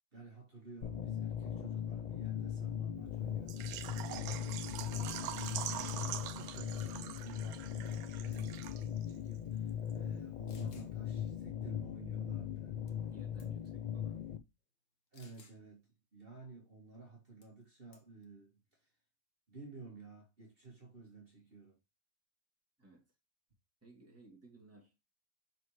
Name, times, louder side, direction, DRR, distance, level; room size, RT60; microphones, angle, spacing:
voice 1, 0.1-12.9 15.1-18.9 19.5-21.8, right 3 dB, 40° right, 2.3 m, -53 dB
sound 1, 0.8-14.4, left 9 dB, 75° left, 0.4 m, -39 dB
Water / Liquid, 3.5-9.1 9.3-9.4 9.9-10.0, right 11 dB, 80° right, 1.0 m, -44 dB
sound 2, 5.4-5.8 7.9-8.1 8.3-8.7 9.4-9.5 10.5-10.9 12.9-13.1 13.4-13.7 15.1-15.6 17.4-17.6 17.9-18.2, left 4 dB, 60° left, 1.5 m, -62 dB
voice 2, 13.1-14.2 22.8-23.0 23.8-25.0, right 2 dB, 10° right, 2.4 m, -59 dB
6.3 x 4.9 x 3.1 m
omnidirectional pair, 1.5 m